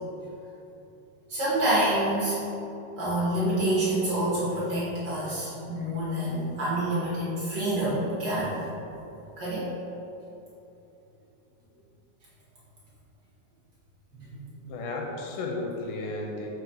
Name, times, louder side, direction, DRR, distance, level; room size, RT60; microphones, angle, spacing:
voice 1, 1.3-2.4 3.0-8.6 9.4-9.7 14.2-14.7, right 1 dB, 75° right, -9 dB, 1.0 m, -27 dB
voice 2, 14.7-16.5, left 2 dB, 80° left, -1 dB, 2.0 m, -33 dB
4.5 x 4.0 x 5.3 m, 3.0 s
omnidirectional pair, 3.8 m